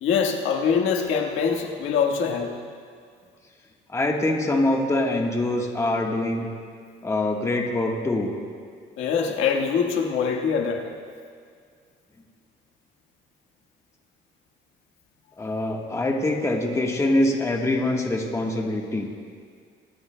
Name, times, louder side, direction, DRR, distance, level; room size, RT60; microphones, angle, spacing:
voice 1, 0.0-2.5 9.0-10.9, left 6 dB, 80° left, 2 dB, 1.5 m, -23 dB
voice 2, 3.9-6.5 7.0-8.3 15.4-19.1, left 1 dB, 15° left, 0 dB, 1.3 m, -24 dB
24.5 x 17.5 x 2.2 m, 2.1 s
cardioid pair, 140°, 20 cm